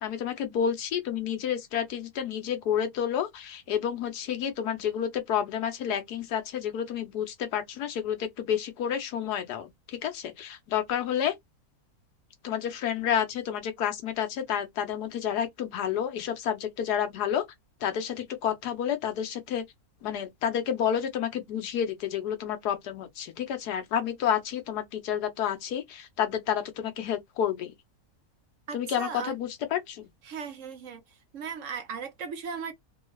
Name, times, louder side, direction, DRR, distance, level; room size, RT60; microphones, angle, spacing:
voice 1, 0.0-11.3 12.4-17.5 17.8-19.6 20.0-27.7 28.7-30.1, left 9 dB, 85° left, 1.4 m, -30 dB
voice 2, 28.7-29.3 30.2-31.0 31.3-32.7, right 6 dB, 65° right, 0.9 m, -37 dB
3.3 x 2.3 x 3.1 m
omnidirectional pair, 1.6 m